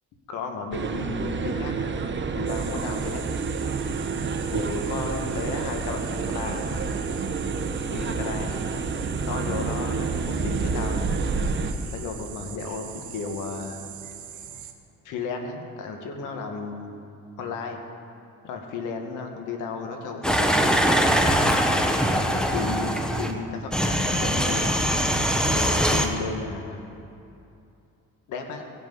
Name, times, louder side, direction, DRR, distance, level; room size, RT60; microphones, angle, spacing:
voice 1, 0.3-1.9 2.3-3.2 4.5-6.8 7.9-8.5 9.2-11.1 11.9-13.8 15.0-17.0 17.4-17.8 18.4-20.7 22.0-24.8 25.5-26.8 28.3-28.6, left 4 dB, 90° left, 4 dB, 1.3 m, -34 dB
sound 1, 0.7-11.7, right 4 dB, 40° right, 1.0 m, -28 dB
sound 2, 2.5-14.7, right 9 dB, 75° right, 1.0 m, -42 dB
sound 3, 20.2-23.3 23.7-26.1, equal, 5° left, 1.0 m, -22 dB
17.0 x 6.1 x 5.3 m, 2.6 s
cardioid pair, 90°, 30 cm